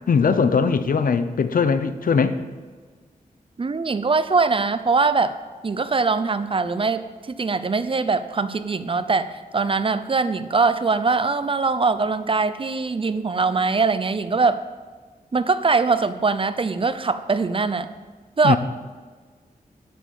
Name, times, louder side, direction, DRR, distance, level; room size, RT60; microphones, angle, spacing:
voice 1, 0.1-2.4 18.4-18.6, left 5 dB, 75° left, 11 dB, 0.8 m, -20 dB
voice 2, 3.6-5.4 5.6-7.0 7.4-14.6 15.3-17.9 18.4-18.6, right 4 dB, 40° right, 12 dB, 0.6 m, -22 dB
11.5 x 8.3 x 7.6 m, 1.5 s
wide cardioid pair, 145°, 15 cm